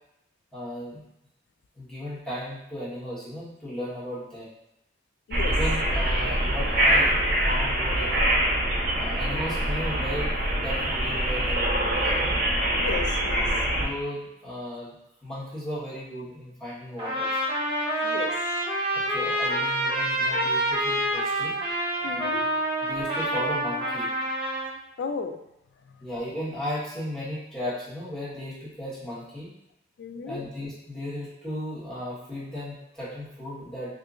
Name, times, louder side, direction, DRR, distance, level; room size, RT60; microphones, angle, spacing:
voice 1, 0.5-1.0 1.7-4.5 5.4-7.1 7.4-8.1 8.9-12.4 13.8-14.9 15.2-17.4 18.9-21.6 22.8-24.1 26.0-29.5 30.3-33.9, equal, 5° left, -11 dB, 1.3 m, -35 dB
sound 1, 5.3-13.9, right 1 dB, 50° right, 0.6 m, -24 dB
voice 2, 12.8-13.5 18.0-18.4 22.0-22.6 25.0-25.4 30.0-30.4, left 5 dB, 80° left, 8 dB, 0.3 m, -34 dB
Trumpet, 17.0-24.7, right 1 dB, 30° right, 0.9 m, -27 dB
2.8 x 2.5 x 3.6 m, 0.84 s
head